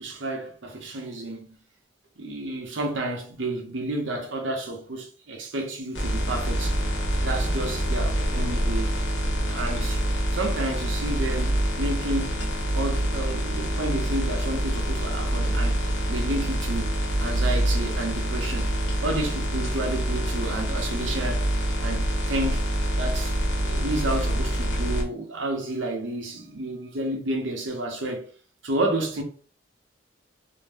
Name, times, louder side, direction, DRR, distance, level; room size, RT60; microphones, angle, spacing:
voice 1, 0.0-1.5 2.2-6.8 7.2-9.0 9.5-10.0 10.3-12.3 12.7-15.8 16.1-18.7 19.0-21.5 21.8-22.6 22.9-23.3 23.6-28.2 28.6-29.2, right 1 dB, 85° right, 0.8 m, -30 dB
sound 1, 5.9-25.0, right 1 dB, 75° left, 0.8 m, -26 dB
2.6 x 2.1 x 3.3 m
head